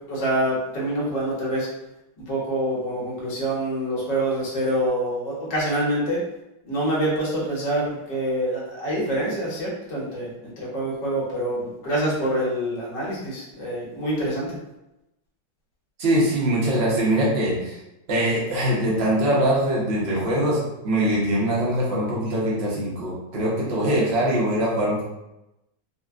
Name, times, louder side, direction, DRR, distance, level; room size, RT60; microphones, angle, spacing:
voice 1, 0.1-1.7 2.3-6.2 6.6-14.5, right 1 dB, 65° left, -5 dB, 1.6 m, -26 dB
voice 2, 16.0-17.8 18.1-25.0, right 1 dB, 50° right, -5 dB, 0.8 m, -22 dB
4.0 x 2.2 x 2.4 m, 0.92 s
omnidirectional pair, 2.2 m